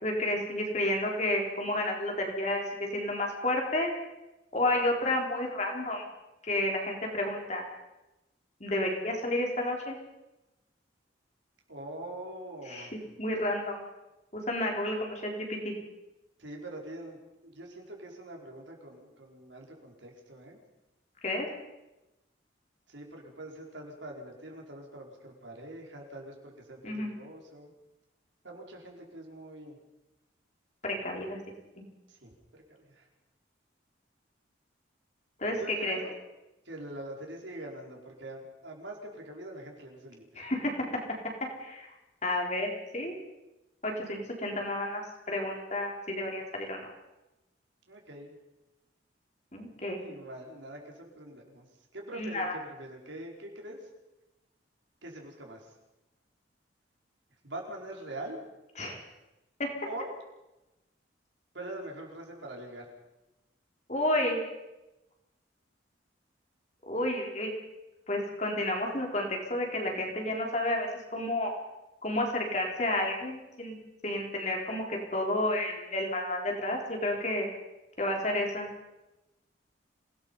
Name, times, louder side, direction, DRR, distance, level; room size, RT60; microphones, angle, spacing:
voice 1, 0.0-3.9 4.5-6.0 6.5-7.6 8.6-10.0 12.7-12.9 13.2-13.8 14.3-15.7 21.2-21.5 26.8-27.1 30.8-31.4 35.4-36.0 40.4-40.8 41.6-41.9 42.2-43.2 43.8-45.0 45.3-46.8 49.5-50.0 52.2-52.5 58.8-59.0 59.6-59.7 63.9-64.4 66.9-67.5 68.1-71.5 72.0-73.8 74.0-77.5 78.0-78.7, left 1 dB, 35° left, 1 dB, 4.1 m, -31 dB
voice 2, 11.7-12.9 16.4-20.6 22.9-27.7 28.4-29.8 32.1-33.1 35.6-36.2 36.6-40.5 47.9-48.3 50.0-51.7 51.9-53.8 55.0-55.7 57.4-58.4 59.9-60.1 61.5-62.9, right 1 dB, 75° right, 0 dB, 5.0 m, -44 dB
27.0 x 19.0 x 5.6 m, 0.99 s
head